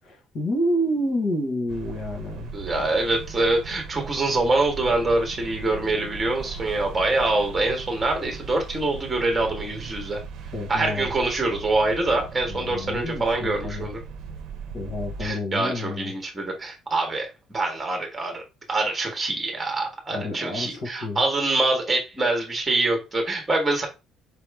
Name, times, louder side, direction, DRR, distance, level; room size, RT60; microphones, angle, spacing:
voice 1, 0.0-2.6 10.5-11.1 12.5-13.9 14.7-16.1 20.1-21.2, left 1 dB, 45° left, 1.3 m, -29 dB
sound 1, 1.7-15.3, right 6 dB, 55° right, 0.7 m, -38 dB
voice 2, 2.5-10.2 10.7-14.0 15.2-18.4 18.7-23.9, right 2 dB, 10° right, 1.4 m, -25 dB
4.8 x 3.0 x 3.4 m
cardioid pair, 175°, 0 cm